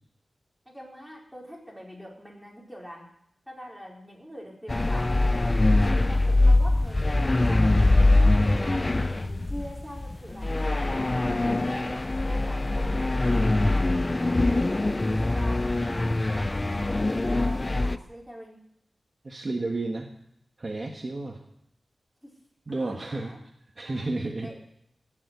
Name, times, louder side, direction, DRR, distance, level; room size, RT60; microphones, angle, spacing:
voice 1, 0.6-3.1 3.5-18.6 22.2-22.4 22.7-23.4 23.8-24.1 24.4-24.6, equal, ahead, -3 dB, 4.6 m, -44 dB
sound 1, 4.7-18.0, left 2 dB, 25° left, 0.5 m, -23 dB
voice 2, 19.2-20.1 20.6-21.4 22.7-23.3 23.8-24.5, right 2 dB, 35° right, 1 dB, 1.4 m, -31 dB
18.5 x 7.3 x 8.2 m, 0.75 s
wide cardioid pair, 120°, 0 cm